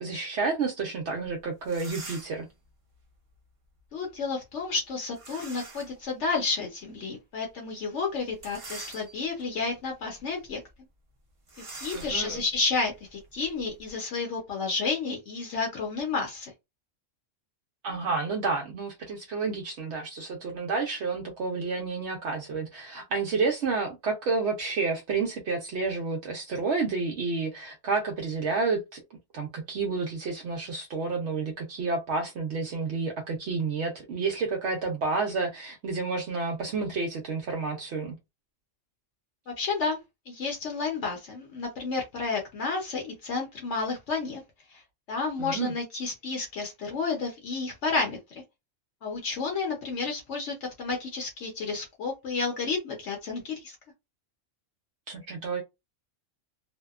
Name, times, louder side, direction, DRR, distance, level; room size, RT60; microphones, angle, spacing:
voice 1, 0.0-2.5 11.9-12.4 17.8-29.0 29.3-38.2 45.4-45.7 55.1-55.6, right 4 dB, 70° right, 0.8 m, -30 dB
sound 1, 1.2-1.3 1.6-2.5 5.1-6.0 6.5-6.6 8.3-9.4 10.0-10.2 10.5-10.6 11.5-13.9, right 2 dB, 35° right, 0.6 m, -44 dB
voice 2, 3.9-10.6 11.8-16.5 39.5-40.0 40.3-44.4 44.7-44.8 45.1-48.4 49.0-53.8, left 4 dB, 70° left, 1.0 m, -31 dB
2.7 x 2.1 x 2.3 m
omnidirectional pair, 1.3 m